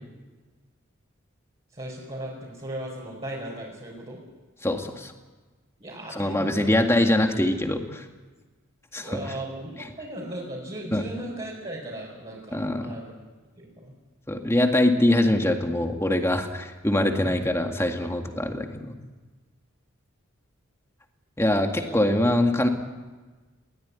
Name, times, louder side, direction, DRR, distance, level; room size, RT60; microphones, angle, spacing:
voice 1, 1.7-4.2 5.8-6.8 9.0-13.1 13.5-13.9 17.2-17.5 21.7-22.0, right 1 dB, 30° right, -6 dB, 5.0 m, -37 dB
voice 2, 4.6-5.1 6.2-8.0 8.9-9.1 10.9-11.0 12.5-13.0 14.3-18.9 21.4-22.7, left 1 dB, 15° left, 4 dB, 2.0 m, -23 dB
21.5 x 17.5 x 9.7 m, 1.3 s
head